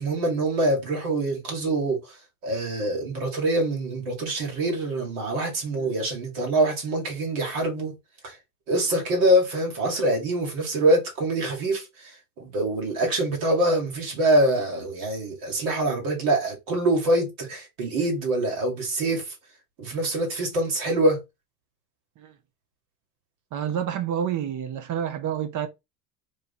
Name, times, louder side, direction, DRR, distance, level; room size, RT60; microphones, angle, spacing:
voice 1, 0.0-2.0 2.4-8.0 8.2-8.4 8.7-11.9 12.4-19.2 19.8-21.2, right 1 dB, 75° right, 2.0 m, -24 dB
voice 2, 23.5-25.7, right 9 dB, 45° right, 0.7 m, -29 dB
3.1 x 2.6 x 4.2 m
hypercardioid pair, 75°, 44 cm